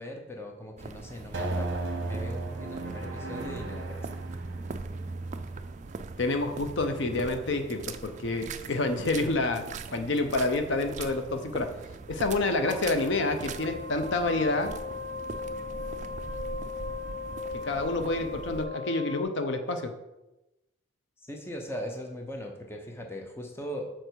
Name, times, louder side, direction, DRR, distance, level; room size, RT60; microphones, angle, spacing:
voice 1, 0.0-4.2 21.3-23.9, equal, 10° left, 3 dB, 0.7 m, -39 dB
sound 1, 0.8-18.7, right 4 dB, 35° right, 0.3 m, -42 dB
sound 2, 1.3-7.8, right 2 dB, 60° right, 0.9 m, -36 dB
voice 2, 6.2-9.6 9.9-11.7 12.1-14.7 17.6-19.9, left 2 dB, 60° left, 7 dB, 0.6 m, -28 dB
sound 3, 12.2-12.3 12.7-19.2, left 4 dB, 90° left, 1.7 m, -38 dB
6.6 x 4.4 x 4.5 m, 0.97 s
head